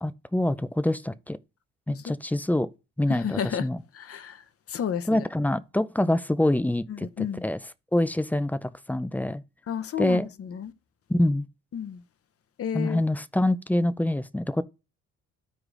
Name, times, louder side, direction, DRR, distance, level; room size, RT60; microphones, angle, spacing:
voice 1, 0.0-1.4 1.9-2.7 3.0-3.8 5.1-9.4 10.0-10.3 11.1-11.5 12.7-14.6, left 1 dB, 5° left, 0.4 m, -26 dB
voice 2, 3.1-3.6 4.0-4.4 4.7-5.2 7.2-7.4 9.7-10.2 10.5-10.7 11.7-12.0 12.6-13.0, left 8 dB, 50° left, 0.8 m, -31 dB
14.0 x 4.8 x 2.5 m
cardioid pair, 90°, 30 cm